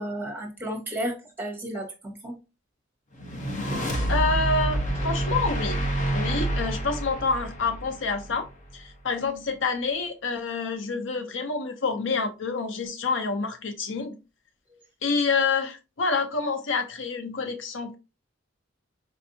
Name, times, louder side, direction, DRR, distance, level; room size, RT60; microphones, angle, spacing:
voice 1, 0.0-2.3, right 1 dB, 10° right, 1.2 m, -33 dB
sound 1, 3.2-8.5, right 1 dB, 40° left, 0.8 m, -28 dB
voice 2, 4.1-5.8 6.1-8.5 8.7-14.2 15.0-17.9, left 4 dB, 70° left, 0.6 m, -27 dB
4.5 x 2.6 x 2.6 m
head